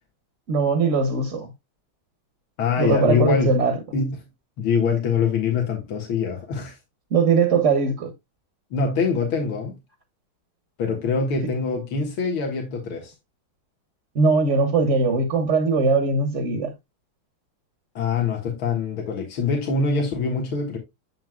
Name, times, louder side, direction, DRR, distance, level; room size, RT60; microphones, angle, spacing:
voice 1, 0.5-1.5 2.8-3.8 7.1-8.1 14.1-16.7, right 4 dB, 40° right, 1.3 m, -20 dB
voice 2, 2.6-3.5 3.9-4.2 4.6-6.8 8.7-9.8 10.8-13.1 18.0-20.8, left 5 dB, 80° left, 2.4 m, -24 dB
7.6 x 6.8 x 2.2 m
omnidirectional pair, 2.3 m